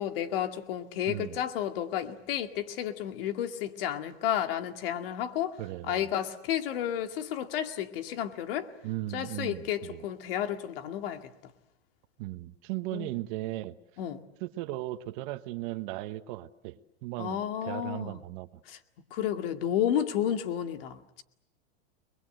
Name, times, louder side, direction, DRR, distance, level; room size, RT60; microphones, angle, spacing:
voice 1, 0.0-5.6 5.9-8.7 9.1-11.2 12.9-13.1 14.0-14.2 17.2-18.2 18.7-18.8 19.1-21.2, left 10 dB, 60° left, 7 dB, 2.3 m, -31 dB
voice 2, 1.1-1.4 5.6-6.1 8.8-10.1 12.2-13.7 14.4-18.6, right 17 dB, 50° right, 11 dB, 1.3 m, -37 dB
30.0 x 21.5 x 7.9 m, 0.80 s
supercardioid pair, 140°, 32 cm